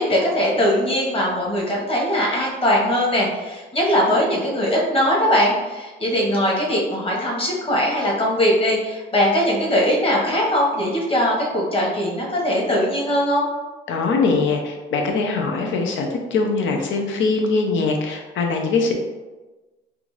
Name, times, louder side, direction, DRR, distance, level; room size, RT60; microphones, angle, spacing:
voice 1, 0.0-13.5, equal, 30° left, -3 dB, 1.1 m, -20 dB
voice 2, 13.9-18.9, left 4 dB, 75° left, 2 dB, 0.6 m, -22 dB
3.4 x 2.6 x 3.1 m, 1.2 s
cardioid pair, 90°, 20 cm